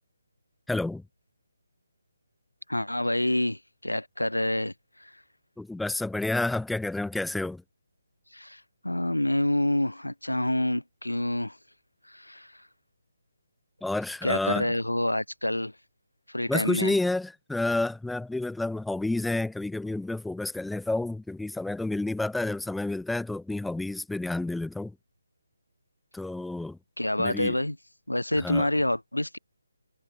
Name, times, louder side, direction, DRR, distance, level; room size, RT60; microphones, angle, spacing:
voice 1, 0.7-1.0 5.6-7.6 13.8-14.7 16.5-24.9 26.1-26.8 27.2-27.6 28.4-28.7, left 2 dB, ahead, 4.5 m, -30 dB
voice 2, 2.7-4.7 5.0-5.1 8.3-11.6 12.1-12.5 14.2-15.7 16.3-16.9 27.0-27.8 28.1-29.4, left 1 dB, 90° left, 5.9 m, -27 dB
figure-of-eight pair, 150°, 0 cm